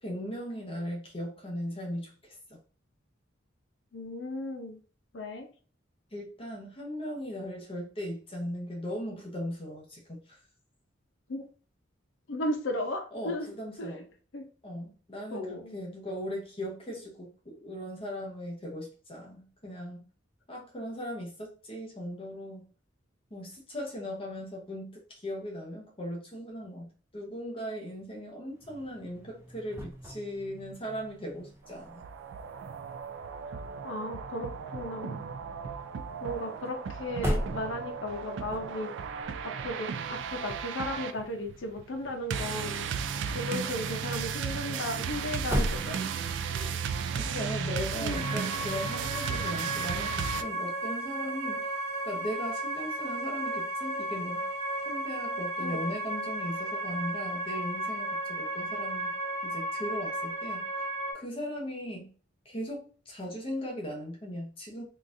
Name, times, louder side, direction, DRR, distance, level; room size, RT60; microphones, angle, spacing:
voice 1, 0.0-2.6 6.1-10.4 13.1-14.1 14.6-20.0 20.5-22.7 23.3-32.0 46.6-46.7 47.1-51.7 52.0-54.5 54.9-59.1 59.4-60.7 61.1-62.1 62.4-64.8, equal, 30° left, -2 dB, 0.8 m, -38 dB
voice 2, 3.9-4.8 5.1-5.5 11.3-11.5 12.3-13.5 13.8-13.9 14.3-14.4 15.3-15.8 33.8-35.2 36.2-38.9 39.4-42.9 43.3-46.1 46.5-46.8 48.0-48.5 55.6-55.8, left 1 dB, 90° left, 4 dB, 0.6 m, -35 dB
sound 1, 28.5-46.6, equal, 15° right, 0.5 m, -40 dB
sound 2, 31.7-50.4, right 6 dB, 70° right, 0.3 m, -35 dB
sound 3, 48.1-61.1, right 1 dB, 35° right, 1.0 m, -34 dB
3.8 x 2.4 x 2.6 m, 0.39 s
head